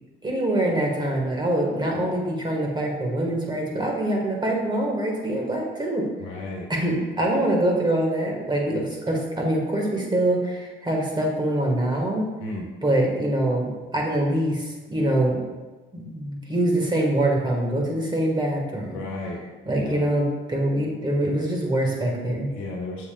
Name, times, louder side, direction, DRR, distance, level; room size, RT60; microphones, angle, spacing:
voice 1, 0.2-6.1 6.7-12.3 12.8-15.4 15.9-19.0 19.6-22.5, right 1 dB, 20° right, -1 dB, 1.6 m, -24 dB
voice 2, 6.2-6.7 12.4-12.7 18.9-19.4 19.8-20.0 22.5-23.1, left 2 dB, 85° left, -1 dB, 1.4 m, -33 dB
6.9 x 6.8 x 2.4 m, 1.2 s
cardioid pair, 90°, 20 cm